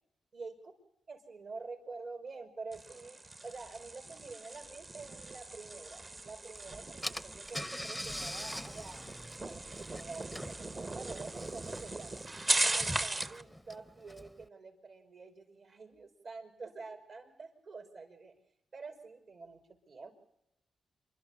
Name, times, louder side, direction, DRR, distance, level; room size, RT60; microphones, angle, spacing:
voice 1, 0.3-0.7 1.1-12.2 12.6-18.3 18.7-20.1, right 4 dB, 65° right, 5 dB, 5.5 m, -48 dB
sound 1, 2.7-13.4, right 2 dB, 30° right, 1.0 m, -38 dB
Car / Engine, 6.5-6.6 7.0-14.5, equal, ahead, 0.7 m, -44 dB
27.5 x 12.0 x 8.4 m, 0.81 s
cardioid pair, 90°, 0 cm